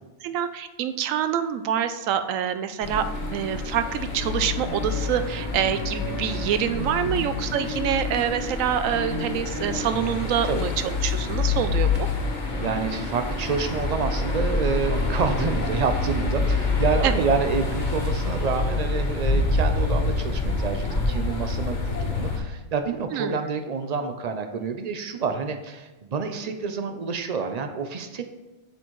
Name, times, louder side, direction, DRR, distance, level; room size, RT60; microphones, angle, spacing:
voice 1, 0.2-3.0 3.3-12.1 17.0-17.1 23.1-23.5, right 9 dB, 80° right, 11 dB, 1.0 m, -26 dB
sound 1, 2.8-22.4, left 3 dB, 40° left, 1.1 m, -27 dB
voice 2, 12.5-28.2, right 5 dB, 50° right, 7 dB, 0.5 m, -28 dB
7.9 x 6.9 x 3.1 m, 1.1 s
omnidirectional pair, 1.3 m